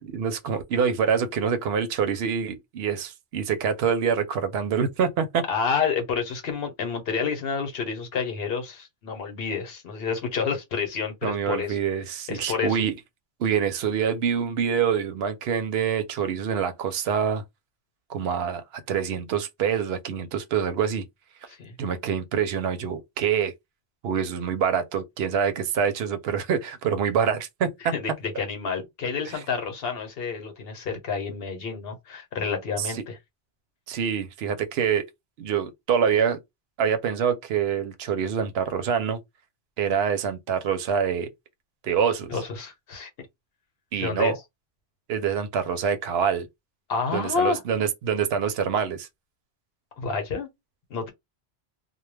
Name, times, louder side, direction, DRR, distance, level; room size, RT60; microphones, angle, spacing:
voice 1, 0.0-5.4 11.2-12.9 13.4-17.4 18.1-21.1 21.8-23.5 24.0-27.9 29.3-29.4 32.8-33.0 33.9-35.0 35.4-36.4 36.8-39.2 39.8-41.3 41.8-42.4 43.9-44.4 45.1-46.5 47.1-49.1, right 7 dB, 80° right, 0.8 m, -26 dB
voice 2, 5.5-11.8 12.3-12.8 21.5-21.7 27.9-33.2 42.3-43.1 44.0-44.3 46.9-47.6 50.0-50.5 50.9-51.1, left 5 dB, 70° left, 1.0 m, -29 dB
2.2 x 2.1 x 3.2 m
omnidirectional pair, 1.1 m